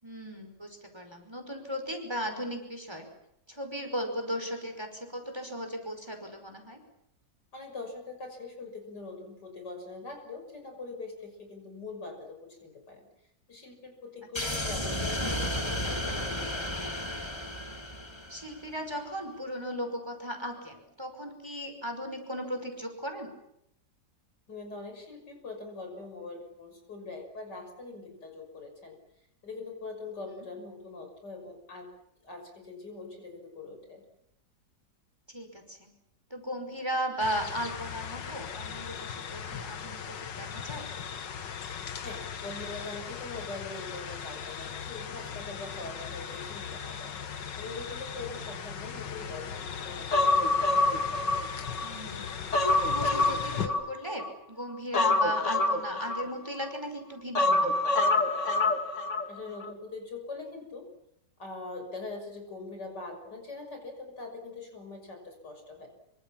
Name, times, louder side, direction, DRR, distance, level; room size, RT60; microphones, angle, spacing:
voice 1, 0.0-3.1 3.5-6.8 14.4-14.5 18.3-23.3 30.2-30.5 35.3-35.9 36.3-40.9 48.5-48.6 51.8-52.3 52.8-57.8, equal, 15° right, 5 dB, 5.4 m, -36 dB
voice 2, 7.5-13.1 13.5-16.8 24.5-29.0 29.4-31.9 32.2-34.0 42.0-47.1 47.6-50.5 59.3-60.9 61.4-65.9, left 3 dB, 75° left, 5 dB, 6.8 m, -42 dB
sound 1, 14.3-18.7, left 1 dB, 15° left, 2.1 m, -33 dB
sound 2, 37.2-53.7, left 7 dB, 90° left, 2.1 m, -38 dB
Human voice, 50.1-51.9 52.3-54.3 54.9-56.7 57.3-59.3 59.6-59.7, left 2 dB, 45° left, 2.4 m, -26 dB
26.5 x 25.0 x 7.3 m, 0.79 s
omnidirectional pair, 1.9 m